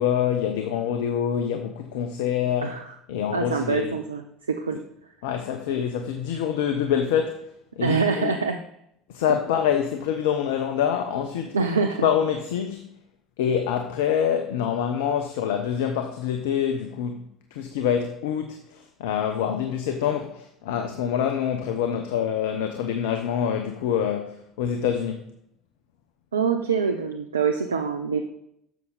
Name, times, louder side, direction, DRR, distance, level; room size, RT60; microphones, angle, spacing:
voice 1, 0.0-2.8 3.1-4.0 5.2-7.5 7.8-8.3 9.1-11.6 12.0-12.9 13.4-17.2 17.5-25.3, left 8 dB, 75° left, 0.8 m, -26 dB
voice 2, 3.3-4.2 4.5-4.8 7.8-8.6 11.5-12.1 26.3-28.2, right 5 dB, 90° right, 0.5 m, -25 dB
11.0 x 7.2 x 4.0 m
hypercardioid pair, 65°, 0 cm